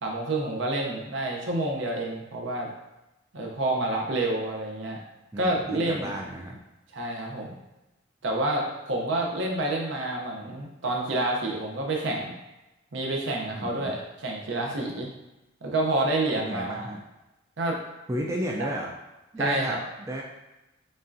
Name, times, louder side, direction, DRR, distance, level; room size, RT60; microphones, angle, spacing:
voice 1, 0.0-2.7 3.3-5.0 5.4-6.1 6.9-7.6 8.2-12.3 12.9-15.1 15.6-16.8 17.6-17.8 18.6-18.7 19.4-19.8, right 2 dB, 70° right, 0 dB, 0.7 m, -28 dB
voice 2, 5.3-6.6 13.5-14.0 16.3-17.0 18.1-18.9 19.3-19.8 20.1-20.2, equal, 15° right, -2 dB, 0.3 m, -33 dB
5.3 x 2.4 x 2.6 m, 1.0 s
head